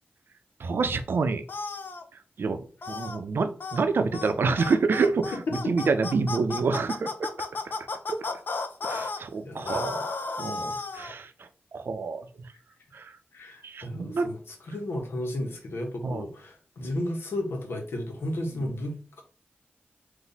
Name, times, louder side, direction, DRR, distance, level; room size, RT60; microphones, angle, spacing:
voice 1, 0.6-1.4 2.4-2.6 2.9-5.3 5.7-7.5 8.1-8.2 8.8-11.3 11.7-12.3 12.9-13.1 13.6-14.3 16.0-16.2 18.6-18.7, right 4 dB, 70° right, 0.5 m, -27 dB
sound 1, 1.5-2.0 2.8-3.2 3.6-3.8 4.1-4.3 4.6-9.2 9.7-11.1, left 3 dB, 60° left, 0.6 m, -33 dB
voice 2, 5.3-5.7 9.4-10.1 13.3-19.2, left 1 dB, 80° left, 1.2 m, -33 dB
4.0 x 2.6 x 4.0 m
wide cardioid pair, 95°, 4 cm